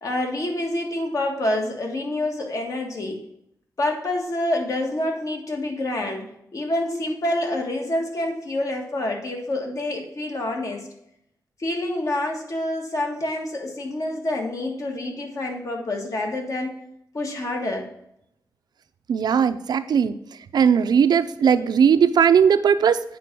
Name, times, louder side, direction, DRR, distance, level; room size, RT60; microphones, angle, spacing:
voice 1, 0.0-3.2 3.8-6.3 6.5-10.9 11.6-16.8 17.1-17.9, left 1 dB, 55° left, 2 dB, 1.7 m, -27 dB
voice 2, 19.1-20.2 20.5-23.0, right 7 dB, 85° right, 12 dB, 0.5 m, -18 dB
8.4 x 5.1 x 6.0 m, 0.75 s
wide cardioid pair, 155°, 7 cm